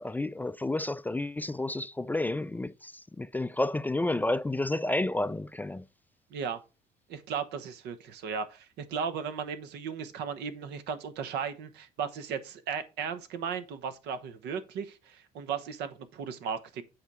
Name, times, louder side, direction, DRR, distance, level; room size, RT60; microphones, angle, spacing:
voice 1, 0.0-2.9 3.2-5.8, left 2 dB, 10° left, 0.3 m, -30 dB
voice 2, 7.1-16.8, right 6 dB, 80° right, 1.1 m, -36 dB
8.1 x 4.5 x 4.8 m
cardioid pair, 110°, 17 cm